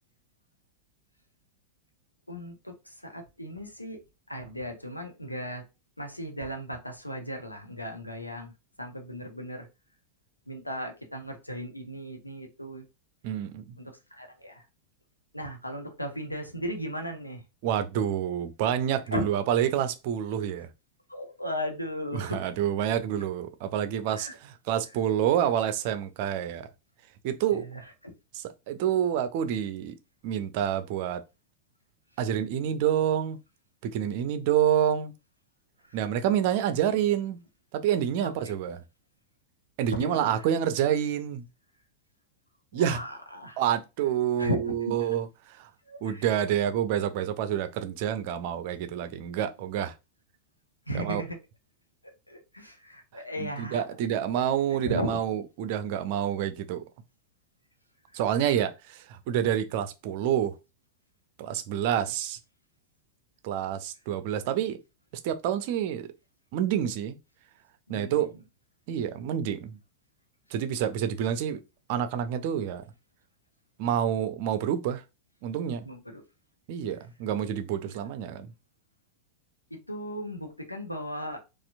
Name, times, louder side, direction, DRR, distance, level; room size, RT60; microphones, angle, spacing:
voice 1, 2.3-4.0 4.3-5.6 6.0-8.5 8.8-9.7 10.5-12.9 13.8-14.6 15.3-17.4 19.1-19.2 21.1-22.4 24.2-24.4 27.5-28.1 35.9-36.0 38.2-38.7 40.0-40.4 42.7-43.6 44.4-45.1 45.9-46.3 50.9-51.4 52.0-53.9 54.8-55.2 58.1-58.2 67.9-68.3 75.8-76.2 77.8-77.9 79.7-81.4, equal, 85° left, 0.8 m, -36 dB
voice 2, 13.2-13.8 17.6-20.7 22.1-26.7 27.2-27.6 28.3-29.9 30.2-31.2 32.2-33.4 33.8-35.1 35.9-37.4 37.7-38.8 39.8-41.5 42.7-43.0 43.6-45.7 46.0-49.9 50.9-51.2 53.1-56.8 58.1-60.5 61.4-62.4 63.4-64.8 65.2-66.1 66.5-67.2 67.9-68.3 68.9-69.8 70.5-71.6 71.9-72.8 73.8-75.0 75.4-75.9 76.7-78.5, right 10 dB, 50° right, 0.5 m, -28 dB
4.2 x 2.4 x 2.5 m
figure-of-eight pair, 90°, 0 cm